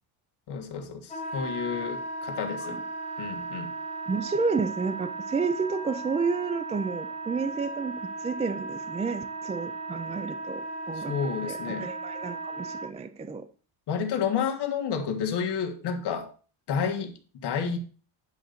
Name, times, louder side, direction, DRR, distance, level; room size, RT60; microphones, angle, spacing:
voice 1, 0.5-2.8 3.2-3.7 11.0-11.9 13.9-16.3 16.7-17.1 17.4-17.8, left 6 dB, 55° left, 1.7 m, -30 dB
Wind instrument woodwind instrument, 1.1-12.9, right 3 dB, 15° left, 2.2 m, -36 dB
voice 2, 4.1-11.1 11.5-13.4, right 4 dB, 15° right, 0.3 m, -31 dB
10.0 x 3.9 x 6.7 m
cardioid pair, 150°, 48 cm